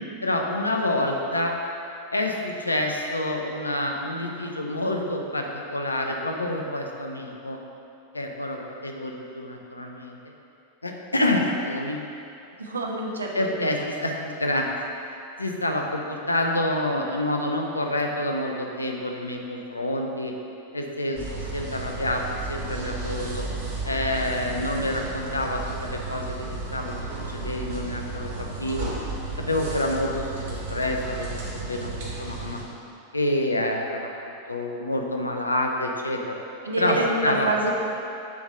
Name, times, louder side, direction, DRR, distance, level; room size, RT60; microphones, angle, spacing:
voice 1, 0.2-1.5 2.1-7.6 8.1-10.2 10.8-12.0 13.3-14.7 15.1-20.3 20.7-23.4 23.8-28.9 29.4-32.6 33.1-34.1 34.5-36.4 36.8-37.7, left 1 dB, 80° left, 2 dB, 0.5 m, -28 dB
voice 2, 12.6-13.7 36.6-37.7, right 2 dB, 75° right, -1 dB, 0.8 m, -27 dB
sound 1, 21.1-32.6, right 3 dB, 55° right, 1.4 m, -33 dB
7.0 x 3.2 x 5.2 m, 2.7 s
figure-of-eight pair, 90°, 0 cm